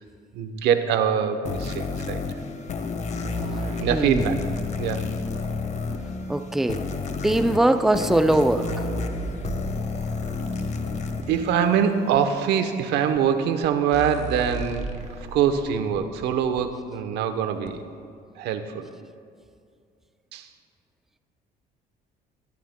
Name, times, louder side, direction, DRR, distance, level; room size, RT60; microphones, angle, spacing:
voice 1, 0.3-2.2 2.7-2.8 3.8-4.4 4.8-5.1 11.3-14.9 15.3-17.8 18.4-18.9 20.3-20.5, right 8 dB, 85° right, 8 dB, 0.9 m, -24 dB
sound 1, 1.4-12.2, left 4 dB, 40° left, 1.0 m, -31 dB
sound 2, 3.2-6.0 6.9-7.0 7.9-8.0 8.3-11.3 12.1-12.2 13.1-13.2 13.6-13.7 13.9-16.6 17.7-17.8, right 3 dB, 40° right, 1.2 m, -36 dB
voice 2, 3.9-4.3 6.3-6.8 7.2-8.7, right 1 dB, ahead, 9 dB, 0.5 m, -21 dB
21.5 x 13.5 x 2.2 m, 2.3 s
cardioid pair, 110°, 17 cm